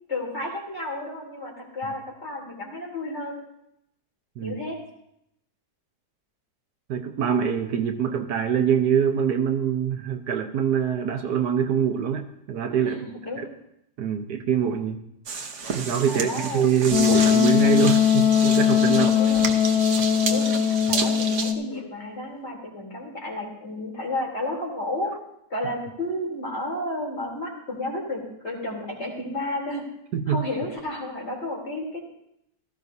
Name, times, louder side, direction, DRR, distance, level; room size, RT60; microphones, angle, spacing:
voice 1, 0.1-3.4 4.4-4.8 12.8-13.5 16.1-16.9 18.9-19.5 20.3-25.2 25.5-29.8 30.3-32.0, left 1 dB, 40° left, -3 dB, 3.6 m, -32 dB
voice 2, 6.9-13.0 14.0-15.0 15.7-19.1 30.1-30.4, right 8 dB, 75° right, 5 dB, 1.4 m, -24 dB
sound 1, 15.3-21.5, right 5 dB, 50° right, 1.2 m, -31 dB
Wind instrument woodwind instrument, 16.9-21.7, left 8 dB, 65° left, 1.0 m, -20 dB
17.0 x 14.5 x 2.7 m, 0.79 s
omnidirectional pair, 1.8 m